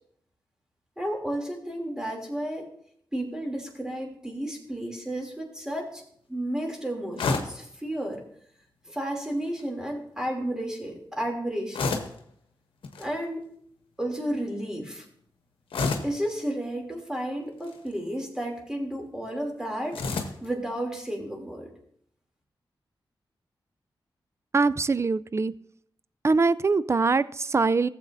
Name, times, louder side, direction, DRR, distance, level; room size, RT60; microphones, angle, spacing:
voice 1, 1.0-2.7 3.1-6.0 6.3-8.2 8.9-11.9 13.0-13.4 14.0-15.0 16.0-21.7, right 1 dB, 5° right, 0 dB, 2.8 m, -32 dB
sound 1, 7.2-7.6 9.3-9.7 11.7-12.2 12.8-13.1 15.7-16.2 17.5-17.9 19.9-20.5, left 4 dB, 90° left, 1.0 m, -29 dB
voice 2, 24.5-25.5 26.2-27.9, right 4 dB, 30° right, 18 dB, 0.4 m, -23 dB
14.5 x 7.5 x 2.6 m, 0.66 s
cardioid pair, 50°, 9 cm